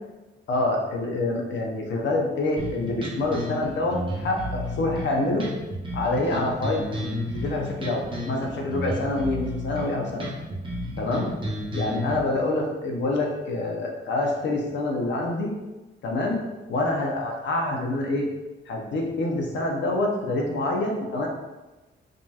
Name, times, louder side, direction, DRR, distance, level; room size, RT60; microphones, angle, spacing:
voice 1, 0.5-5.5 5.9-7.1 7.3-10.4 11.0-11.3 11.7-15.5 16.0-16.4 16.7-18.3 18.7-21.3, left 2 dB, 70° left, 0 dB, 0.8 m, -26 dB
sound 1, 2.6-12.2, left 1 dB, 25° right, 0.8 m, -32 dB
5.1 x 2.9 x 2.4 m, 1.1 s
wide cardioid pair, 145°, 20 cm